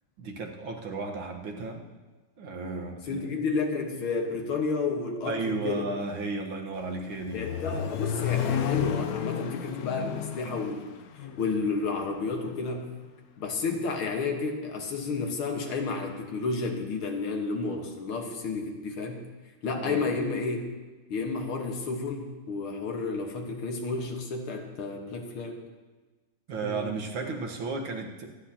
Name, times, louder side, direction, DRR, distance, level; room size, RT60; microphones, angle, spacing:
voice 1, 0.2-1.8 2.4-3.2 5.2-7.4 19.7-20.1 26.5-28.3, right 3 dB, 75° right, 1 dB, 2.2 m, -34 dB
voice 2, 3.0-5.9 7.3-10.9 11.4-12.9 13.4-19.2 19.6-20.6 21.1-25.6 26.6-26.9, left 4 dB, 85° left, 2 dB, 2.3 m, -31 dB
Accelerating revving vroom, 6.7-12.8, left 9 dB, 70° left, 0.9 m, -33 dB
25.0 x 9.9 x 2.9 m, 1.3 s
omnidirectional pair, 2.3 m